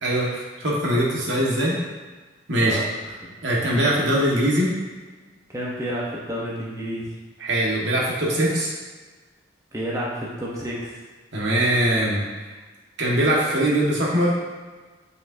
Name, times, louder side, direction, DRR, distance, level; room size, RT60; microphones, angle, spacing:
voice 1, 0.0-1.8 2.5-2.8 3.4-4.7 7.4-8.7 11.3-12.2 13.0-14.3, right 1 dB, 75° right, -4 dB, 1.5 m, -21 dB
voice 2, 3.2-3.7 5.5-7.1 9.7-11.0, equal, 15° right, -5 dB, 0.9 m, -30 dB
8.4 x 5.2 x 2.7 m, 1.3 s
head